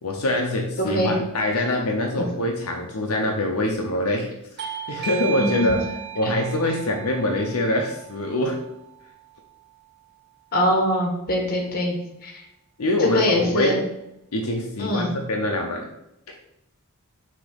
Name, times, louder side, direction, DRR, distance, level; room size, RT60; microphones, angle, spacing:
voice 1, 0.0-4.3 4.9-5.8 6.1-8.6 12.8-13.8 14.3-15.9 16.3-16.4, left 1 dB, 85° left, 2 dB, 0.8 m, -24 dB
voice 2, 0.8-1.1 2.2-2.3 5.3-5.8 10.5-12.4 13.0-13.8 14.8-15.1, equal, 45° left, 1 dB, 1.5 m, -23 dB
Bell / Doorbell, 4.6-9.8, right 9 dB, 50° right, 0.7 m, -36 dB
6.1 x 3.0 x 5.1 m, 0.84 s
head